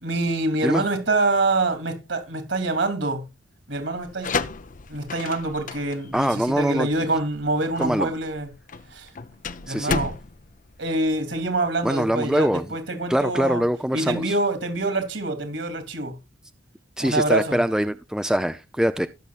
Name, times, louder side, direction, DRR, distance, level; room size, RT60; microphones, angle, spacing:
voice 1, 0.0-3.3 3.7-4.3 4.9-8.5 8.9-9.1 9.6-10.1 10.8-13.6 13.9-16.2 17.0-17.6, right 2 dB, 60° right, 3.1 m, -25 dB
sound 1, 4.0-11.6, left 4 dB, 40° left, 0.7 m, -33 dB
voice 2, 6.1-6.9 7.8-8.1 9.7-10.0 11.8-12.7 13.1-14.3 17.0-19.1, equal, 5° right, 0.5 m, -23 dB
20.5 x 7.1 x 2.4 m
head